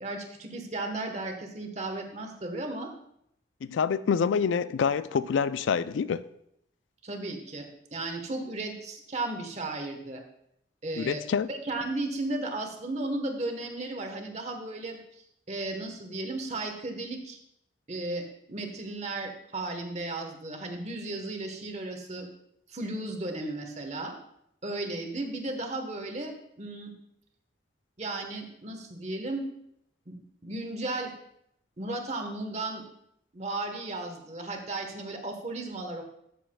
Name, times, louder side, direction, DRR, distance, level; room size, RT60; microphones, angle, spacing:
voice 1, 0.0-2.9 7.0-10.2 10.8-11.2 11.5-15.0 15.5-17.4 17.9-22.3 22.7-24.1 24.6-26.9 28.0-29.4 30.1-30.2 30.4-31.1 31.8-32.8 33.3-36.0, right 2 dB, 35° right, 1.0 m, -35 dB
voice 2, 3.6-6.2 11.0-11.5, left 6 dB, 80° left, 0.3 m, -26 dB
13.5 x 6.9 x 2.2 m
head